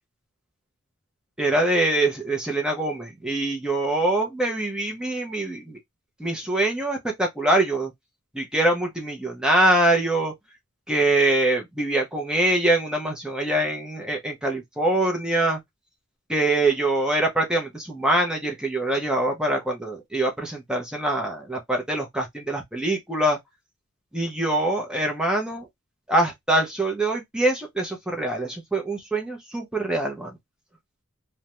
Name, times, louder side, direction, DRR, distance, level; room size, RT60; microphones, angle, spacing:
voice 1, 1.4-5.8 6.2-7.9 8.3-10.3 10.9-15.6 16.3-23.4 24.1-25.7 26.1-30.4, right 1 dB, 5° right, 0.6 m, -24 dB
2.4 x 2.1 x 2.9 m
head